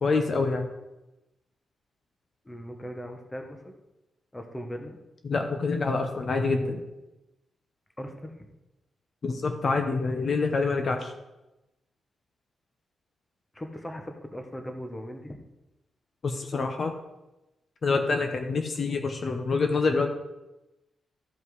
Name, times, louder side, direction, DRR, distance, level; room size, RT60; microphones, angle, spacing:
voice 1, 0.0-0.7 5.2-6.8 9.2-11.1 16.2-17.0 17.8-20.1, left 4 dB, 45° left, 5 dB, 0.9 m, -26 dB
voice 2, 2.4-3.8 4.3-5.0 8.0-8.5 13.5-15.4, equal, 10° left, 4 dB, 1.2 m, -39 dB
14.0 x 5.8 x 4.8 m, 0.99 s
wide cardioid pair, 130°, 0 cm